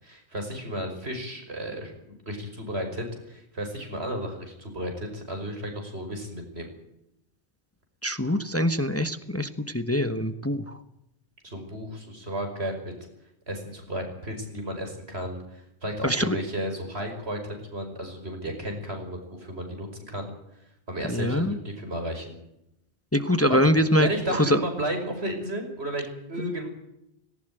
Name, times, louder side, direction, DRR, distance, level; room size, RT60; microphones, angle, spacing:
voice 1, 0.0-6.7 11.4-12.9 13.5-15.4 15.8-20.3 20.9-22.4 23.5-23.6 24.0-26.7, right 1 dB, 75° right, 4 dB, 5.9 m, -33 dB
voice 2, 8.0-10.8 16.0-16.4 21.1-21.5 23.1-24.6, equal, 15° left, 11 dB, 1.3 m, -24 dB
19.0 x 18.5 x 9.2 m, 0.83 s
omnidirectional pair, 1.1 m